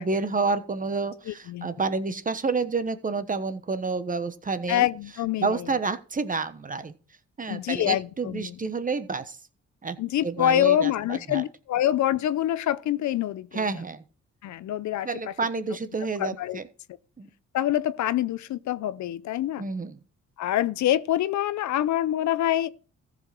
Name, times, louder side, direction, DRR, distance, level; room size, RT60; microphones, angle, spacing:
voice 1, 0.0-4.9 5.4-6.9 7.4-9.4 9.8-10.0 10.2-11.4 13.5-14.0 15.0-16.7 17.2-17.3 19.6-20.0, right 4 dB, 25° right, 1.1 m, -29 dB
voice 2, 1.3-1.7 4.7-5.7 7.5-8.6 10.0-13.7 14.4-15.3 16.2-16.6 17.5-19.6 20.4-22.7, left 12 dB, 70° left, 0.7 m, -26 dB
14.5 x 5.1 x 6.0 m
cardioid pair, 90°, 30 cm